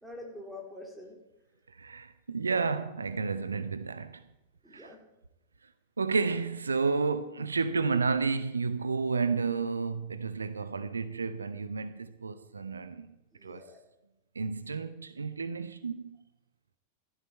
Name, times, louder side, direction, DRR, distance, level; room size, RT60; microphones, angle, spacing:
voice 1, 0.0-1.2 4.6-5.0 13.3-13.8, left 2 dB, 5° right, 3.7 m, -45 dB
voice 2, 1.7-4.2 4.7-4.9 6.0-13.2 13.4-13.6 14.3-16.2, right 4 dB, 75° right, 0.6 m, -31 dB
15.5 x 12.0 x 4.5 m
figure-of-eight pair, 90°, 0 cm